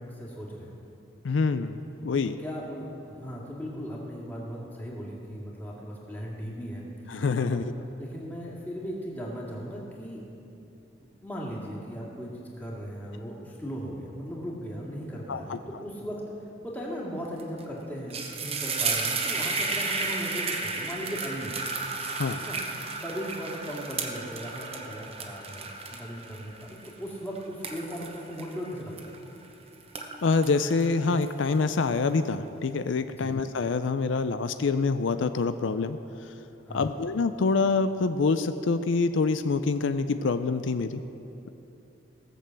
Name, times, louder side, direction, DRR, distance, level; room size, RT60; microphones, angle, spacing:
voice 1, 0.1-0.8 2.4-6.9 7.4-7.6 8.0-10.2 11.0-16.2 16.6-21.6 22.4-22.6 23.0-29.1 33.2-33.4 36.6-37.0, equal, 10° left, -4 dB, 2.2 m, -37 dB
voice 2, 1.2-2.3 7.1-7.7 15.3-15.6 22.1-22.4 30.2-36.3 36.7-41.0, left 4 dB, 80° left, 10 dB, 0.5 m, -26 dB
sound 1, 17.4-17.6 17.9-29.5 29.8-31.7, right 4 dB, 30° right, 0.9 m, -33 dB
17.5 x 6.8 x 7.5 m, 2.9 s
head